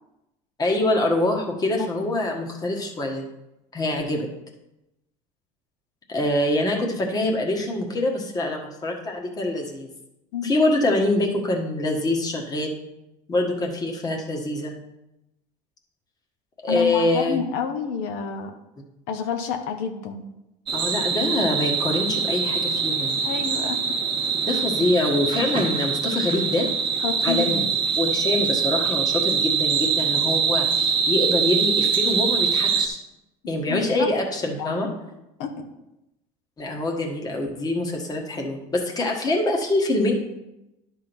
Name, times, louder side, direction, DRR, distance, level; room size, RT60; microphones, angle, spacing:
voice 1, 0.6-3.3 3.7-4.3 6.1-9.9 10.4-12.7 13.3-14.7 16.6-17.4 20.7-23.2 24.4-26.7 27.2-27.7 28.0-33.0 33.5-34.9 36.6-40.1, left 1 dB, 25° left, 1 dB, 1.4 m, -24 dB
voice 2, 1.8-2.2 10.3-10.6 16.7-18.6 19.1-20.3 23.2-24.0 27.0-27.7 28.4-28.5 33.7-34.1 34.6-34.8 35.4-35.7, left 6 dB, 85° left, 5 dB, 1.0 m, -29 dB
sound 1, 20.7-32.9, right 6 dB, 30° right, 1.1 m, -23 dB
11.0 x 3.7 x 6.1 m, 0.91 s
cardioid pair, 140°, 17 cm